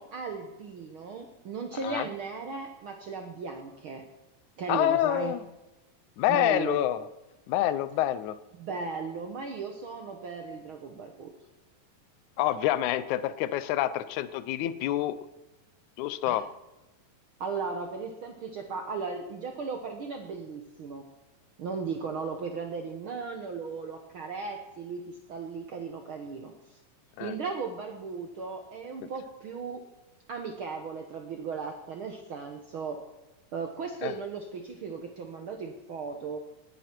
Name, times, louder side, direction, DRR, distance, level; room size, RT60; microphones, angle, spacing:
voice 1, 0.0-4.0 4.6-5.3 6.3-6.8 8.6-11.3 16.2-16.4 17.4-21.1 21.6-26.8 27.2-29.8 30.3-33.0 33.5-36.4, right 5 dB, 75° right, 4 dB, 1.2 m, -36 dB
voice 2, 4.7-5.4 6.2-7.1 7.5-8.4 12.4-15.2 16.0-16.5 27.2-27.3 34.0-34.1, left 13 dB, 75° left, 14 dB, 1.8 m, -27 dB
19.5 x 11.0 x 4.5 m, 1.0 s
omnidirectional pair, 4.0 m